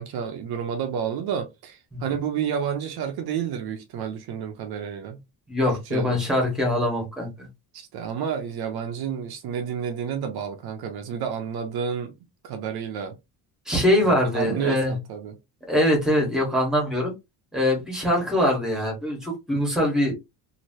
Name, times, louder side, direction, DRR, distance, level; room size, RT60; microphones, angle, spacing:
voice 1, 0.0-5.2 5.7-6.2 7.7-12.1 12.4-13.1 14.0-15.4, right 8 dB, 60° right, 0.8 m, -30 dB
voice 2, 5.5-7.5 13.6-15.0 15.7-17.1 17.5-20.1, left 1 dB, ahead, 1.5 m, -23 dB
3.1 x 2.8 x 2.7 m
cardioid pair, 165°, 42 cm